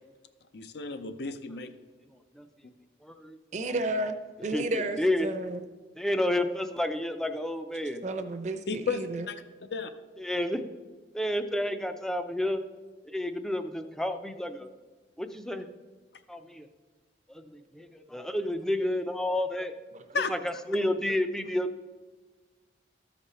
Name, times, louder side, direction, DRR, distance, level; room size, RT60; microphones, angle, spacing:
voice 1, 0.5-1.7 8.7-9.4 9.7-9.9 20.1-20.3, left 4 dB, 65° left, 10 dB, 0.6 m, -33 dB
voice 2, 3.0-3.4 3.7-3.8 4.5-5.3 6.0-8.0 10.2-10.6 11.1-12.6 13.1-14.7 15.2-15.7 16.3-16.7 17.3-19.7 20.3-21.7, left 1 dB, 5° left, 7 dB, 0.4 m, -30 dB
voice 3, 3.5-4.2 4.4-5.6 8.0-9.3 19.9-20.0 21.1-21.2, right 2 dB, 40° right, 6 dB, 0.7 m, -32 dB
13.5 x 5.2 x 4.2 m, 1.3 s
head